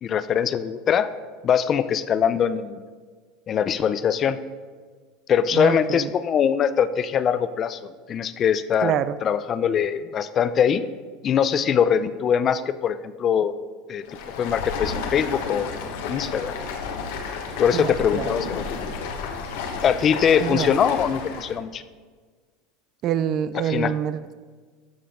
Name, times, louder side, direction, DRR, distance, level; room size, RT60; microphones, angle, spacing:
voice 1, 0.0-1.1 1.4-2.8 3.5-4.4 5.3-10.8 11.2-13.6 13.9-14.0 14.4-16.5 17.6-18.6 19.8-21.8 23.5-23.9, left 8 dB, 35° left, 13 dB, 0.4 m, -22 dB
voice 2, 5.5-6.1 8.8-9.2 17.7-18.3 20.4-20.7 23.0-24.3, right 9 dB, 50° right, 15 dB, 0.4 m, -26 dB
Stream, 14.0-21.6, left 5 dB, 80° left, 1.2 m, -32 dB
12.5 x 5.6 x 3.7 m, 1.5 s
supercardioid pair, 120°, 0 cm